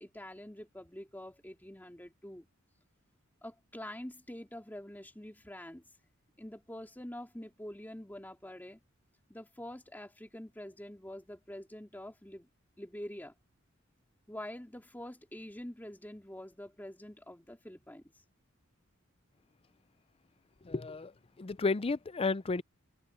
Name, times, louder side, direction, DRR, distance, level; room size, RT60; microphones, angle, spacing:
voice 1, 0.0-2.5 3.4-5.8 6.4-8.8 9.3-12.5 12.8-13.3 14.3-18.2, left 1 dB, 10° left, 2.2 m, -46 dB
voice 2, 20.6-21.1 21.4-22.6, left 3 dB, 25° left, 0.5 m, -32 dB
open air
head